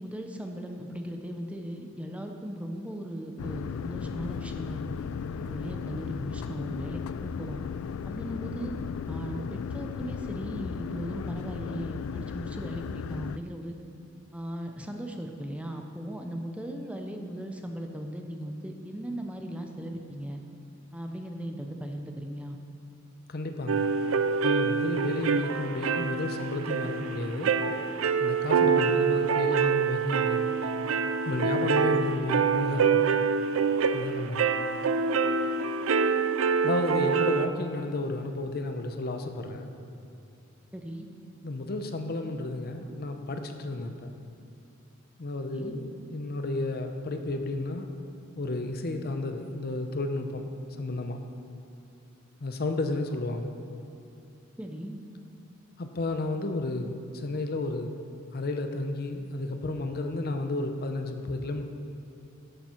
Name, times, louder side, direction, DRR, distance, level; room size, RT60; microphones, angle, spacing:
voice 1, 0.0-5.0 5.4-7.6 8.1-8.8 9.1-13.8 14.3-20.4 20.9-22.6 40.7-41.1 45.5-45.8 54.6-55.0, equal, 5° right, 3 dB, 0.6 m, -38 dB
sound 1, 3.4-13.4, left 6 dB, 80° left, 0.3 m, -35 dB
voice 2, 23.3-23.9 24.4-27.5 28.2-30.5 31.3-33.1 33.9-34.5 36.6-39.7 41.4-44.1 45.2-47.9 48.4-51.2 52.4-53.5 55.8-57.9 58.3-61.7, left 2 dB, 50° left, 6 dB, 0.7 m, -32 dB
sound 2, 23.7-37.5, right 5 dB, 75° right, 0.4 m, -26 dB
11.5 x 7.1 x 4.4 m, 2.7 s
head